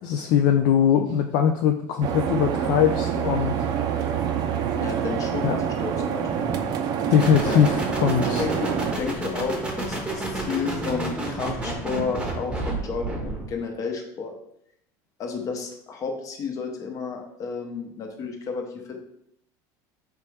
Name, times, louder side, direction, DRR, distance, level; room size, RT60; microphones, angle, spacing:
voice 1, 0.0-3.5 3.9-4.0 5.4-5.6 7.1-8.4, left 8 dB, 60° left, 5 dB, 0.3 m, -21 dB
sound 1, 2.0-8.9, right 8 dB, 45° right, 0.5 m, -26 dB
voice 2, 4.8-6.6 7.4-7.6 8.2-14.3 15.2-19.0, left 5 dB, 35° left, 3 dB, 0.8 m, -32 dB
sound 2, 7.2-13.5, right 2 dB, 10° right, 0.8 m, -30 dB
4.3 x 3.2 x 3.4 m, 0.73 s
supercardioid pair, 130°, 9 cm